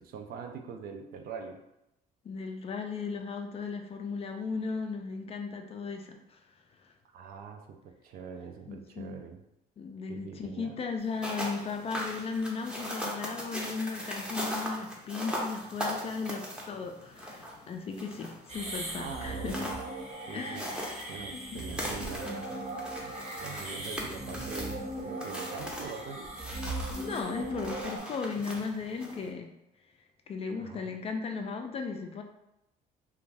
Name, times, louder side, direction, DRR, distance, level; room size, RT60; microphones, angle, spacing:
voice 1, 0.0-1.6 7.1-9.4 10.1-10.8 19.0-19.8 20.3-20.6 21.1-22.5 23.0-26.3 30.6-30.9, right 6 dB, 60° right, 4 dB, 0.4 m, -43 dB
voice 2, 2.2-6.4 6.8-6.9 8.7-9.2 9.8-19.5 20.3-20.9 21.3-21.6 27.0-29.5 30.3-32.2, left 4 dB, 35° left, 4 dB, 0.4 m, -36 dB
sound 1, 11.0-29.3, equal, 5° right, 0.6 m, -40 dB
sound 2, 18.5-28.0, right 1 dB, 40° right, 0.8 m, -39 dB
2.5 x 2.2 x 3.2 m, 0.87 s
cardioid pair, 110°, 17 cm